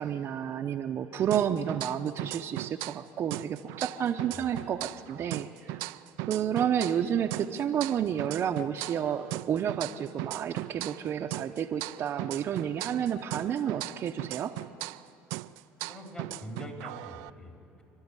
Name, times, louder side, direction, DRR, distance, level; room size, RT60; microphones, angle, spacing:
voice 1, 0.0-5.8 6.2-14.5, right 9 dB, 50° right, 2 dB, 0.8 m, -30 dB
sound 1, 1.3-3.0 3.3-7.0 7.3-11.1 11.3-15.0 15.3-17.3, right 20 dB, 80° right, 0.4 m, -38 dB
voice 2, 15.9-17.8, left 1 dB, 20° left, 1 dB, 3.8 m, -44 dB
28.0 x 12.0 x 9.8 m, 2.8 s
supercardioid pair, 95°, 5 cm